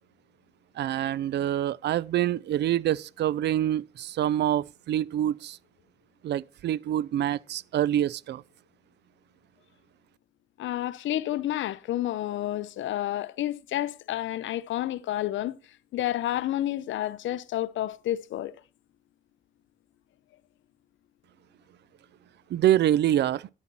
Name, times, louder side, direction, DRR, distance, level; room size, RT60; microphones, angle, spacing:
voice 1, 0.8-5.6 6.2-8.4 22.5-23.5, right 12 dB, 60° right, 0.4 m, -26 dB
voice 2, 10.6-15.5 15.9-18.5, left 13 dB, 75° left, 0.7 m, -30 dB
10.5 x 8.3 x 4.2 m
cardioid pair, 90°, 20 cm